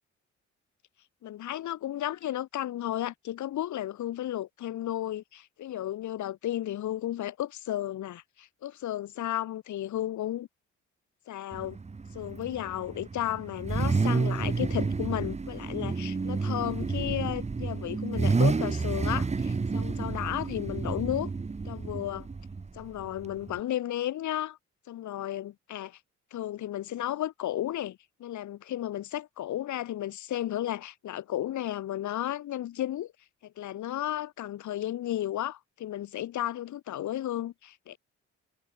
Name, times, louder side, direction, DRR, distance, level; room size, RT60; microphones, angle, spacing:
voice 1, 1.2-10.5 11.3-11.8 12.1-21.3 21.7-22.3 22.7-24.6 24.9-26.0 26.3-33.1 33.4-38.0, left 12 dB, 70° left, 1.9 m, -33 dB
Car / Idling / Accelerating revving vroom, 11.5-23.6, right 4 dB, 20° right, 1.3 m, -30 dB
cardioid pair, 90°, 30 cm